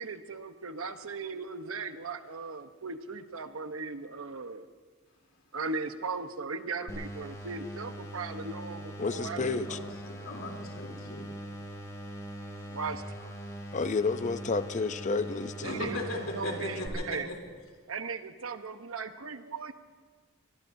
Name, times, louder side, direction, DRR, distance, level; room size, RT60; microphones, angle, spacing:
voice 1, 0.0-4.7 5.5-9.7 12.7-13.3 15.6-16.0 16.3-17.3 17.9-19.7, right 4 dB, 80° right, 9 dB, 1.0 m, -38 dB
sound 1, 6.9-16.9, right 1 dB, 15° left, 2.7 m, -42 dB
voice 2, 9.0-9.8 13.7-15.9, left 4 dB, 35° left, 12 dB, 0.6 m, -30 dB
voice 3, 10.0-11.3 15.6-17.3, left 1 dB, 75° left, 0 dB, 3.3 m, -37 dB
24.0 x 21.5 x 2.7 m, 1.5 s
head